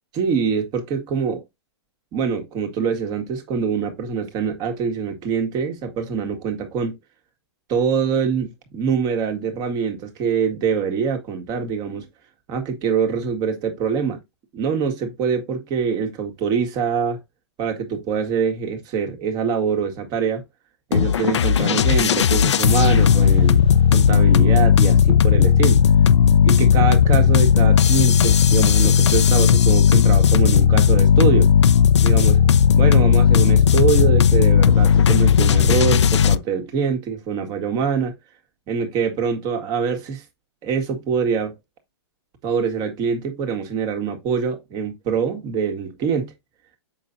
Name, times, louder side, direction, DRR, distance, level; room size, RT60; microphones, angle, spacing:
voice 1, 0.1-1.4 2.1-7.0 7.7-12.1 12.5-14.2 14.5-17.2 17.6-20.4 20.9-23.7 23.9-25.8 26.4-31.5 32.0-32.4 32.8-38.1 38.7-40.2 40.6-41.5 42.4-46.3, right 6 dB, 25° right, 1.8 m, -24 dB
sound 1, 20.9-36.4, left 7 dB, 90° left, 0.5 m, -15 dB
7.1 x 5.9 x 2.7 m
hypercardioid pair, 150°, 14 cm